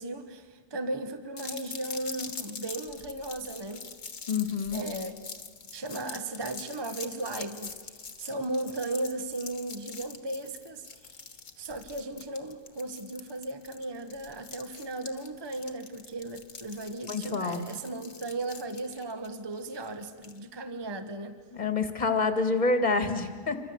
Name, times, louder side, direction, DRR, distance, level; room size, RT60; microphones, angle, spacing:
voice 1, 0.0-3.8 4.7-5.2 5.7-7.8 8.2-10.9 11.6-21.4, right 2 dB, 15° right, 9 dB, 1.2 m, -36 dB
sound 1, 1.4-20.4, left 5 dB, 50° left, 1.8 m, -44 dB
voice 2, 4.3-4.8 17.1-17.6 21.5-23.6, left 3 dB, 25° left, 8 dB, 2.0 m, -27 dB
27.0 x 24.5 x 8.0 m, 1.5 s
omnidirectional pair, 1.7 m